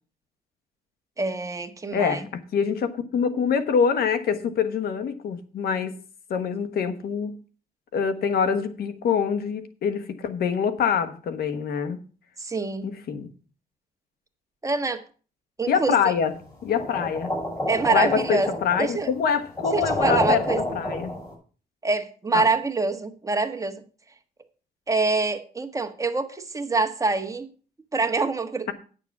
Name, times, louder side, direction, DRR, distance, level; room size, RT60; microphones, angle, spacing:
voice 1, 1.2-2.3 12.4-13.0 14.6-15.0 15.6-16.1 17.7-18.5 18.8-19.1 19.7-20.6 21.8-23.8 24.9-27.5 27.9-28.7, right 3 dB, 20° right, 1.5 m, -25 dB
voice 2, 1.9-6.0 6.3-7.4 7.9-12.0 12.8-13.3 15.7-16.3 16.6-17.3 17.9-20.4 20.7-21.1 22.3-22.5, left 7 dB, 75° left, 1.3 m, -25 dB
sound 1, 16.8-21.3, left 1 dB, 20° left, 6.2 m, -29 dB
9.1 x 6.8 x 6.0 m
cardioid pair, 95°, 16 cm